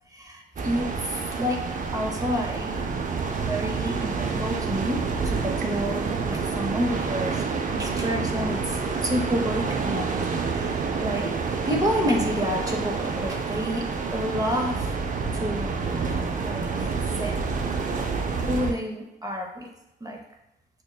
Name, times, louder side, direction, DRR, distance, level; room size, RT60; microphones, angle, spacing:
voice 1, 0.1-0.9 1.3-1.6 1.9-2.7 3.3-5.0 5.3-11.3 11.6-15.0 15.3-17.4 18.0-19.7 20.0-20.2, equal, 20° right, 2 dB, 0.8 m, -29 dB
sound 1, 0.6-18.7, right 4 dB, 50° right, 0.5 m, -28 dB
6.0 x 2.2 x 2.3 m, 0.90 s
cardioid pair, 65°, 18 cm